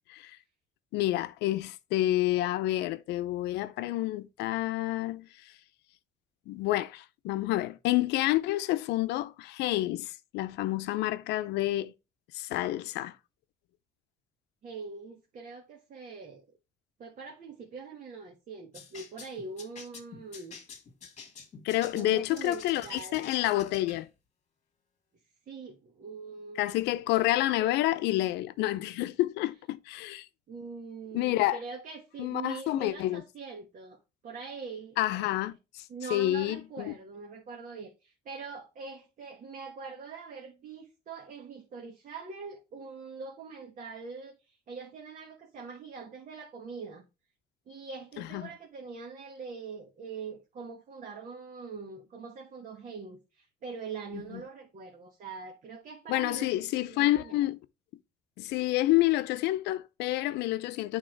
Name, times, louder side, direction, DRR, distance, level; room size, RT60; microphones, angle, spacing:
voice 1, 0.9-5.3 6.5-11.9 12.3-13.2 21.6-24.1 26.6-30.3 31.1-31.6 32.2-33.2 35.0-35.8 36.1-36.9 48.3-48.4 54.1-54.4 56.1-57.6 58.4-61.0, left 16 dB, 85° left, 0.6 m, -29 dB
voice 2, 14.6-16.4 17.0-20.6 21.9-23.3 25.5-26.8 27.6-27.8 30.5-34.0 34.2-35.4 35.9-47.0 47.7-56.5 56.8-57.5, right 5 dB, 50° right, 1.3 m, -43 dB
sound 1, 18.7-24.1, left 5 dB, 45° left, 1.6 m, -48 dB
8.5 x 3.6 x 4.5 m
cardioid pair, 110°, 17 cm